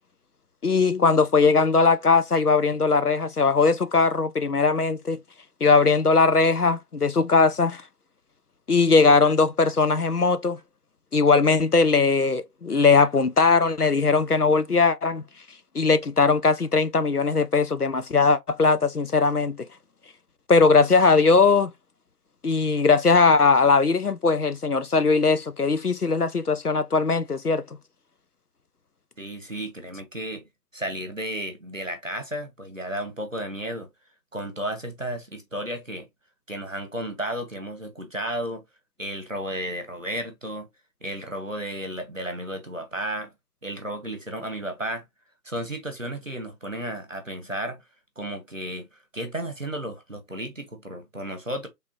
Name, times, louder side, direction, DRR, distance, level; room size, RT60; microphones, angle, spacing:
voice 1, 0.6-5.2 5.6-7.8 8.7-10.6 11.1-15.2 15.7-19.6 20.5-21.7 22.4-27.6, left 4 dB, 65° left, 0.6 m, -20 dB
voice 2, 29.2-33.9 34.3-36.1 36.5-38.6 39.0-40.7 41.0-43.3 43.6-45.0 45.4-47.8 48.2-51.7, right 1 dB, 50° right, 1.0 m, -33 dB
4.2 x 3.5 x 2.5 m
figure-of-eight pair, 180°, 49 cm